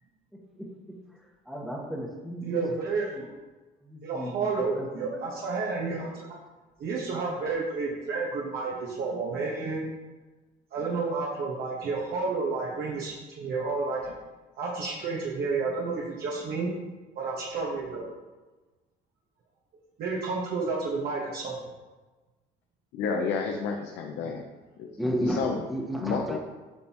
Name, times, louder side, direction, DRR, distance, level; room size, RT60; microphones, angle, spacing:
voice 1, 0.3-1.0 1.4-2.6 3.1-3.3 3.8-4.3 4.7-5.2 25.0-26.4, equal, ahead, -1 dB, 1.4 m, -33 dB
voice 2, 2.4-3.1 4.0-6.3 6.8-9.9 10.7-14.1 14.6-16.7 17.1-18.1 20.0-21.6, right 4 dB, 65° right, -4 dB, 1.3 m, -31 dB
voice 3, 22.9-24.4 24.8-24.9 25.2-25.6 26.0-26.4, left 5 dB, 85° left, 2 dB, 0.7 m, -30 dB
8.7 x 5.4 x 3.0 m, 1.2 s
cardioid pair, 110°, 17 cm